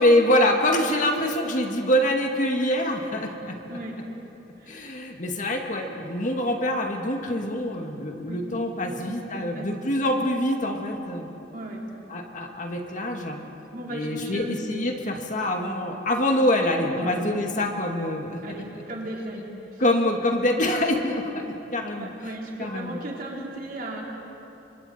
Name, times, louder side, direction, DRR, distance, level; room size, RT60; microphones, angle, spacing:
voice 1, 0.0-3.6 4.7-11.3 12.1-13.4 13.9-18.4 19.8-21.5 21.7-22.1 22.6-23.0, left 1 dB, 45° left, 2 dB, 2.1 m, -25 dB
voice 2, 4.6-4.9 8.3-8.4 8.8-9.0 9.4-9.7 11.5-11.8 13.7-14.6 17.0-17.2 18.4-19.8 21.9-24.0, right 1 dB, 55° right, -3 dB, 4.1 m, -36 dB
30.0 x 25.5 x 4.4 m, 3.0 s
head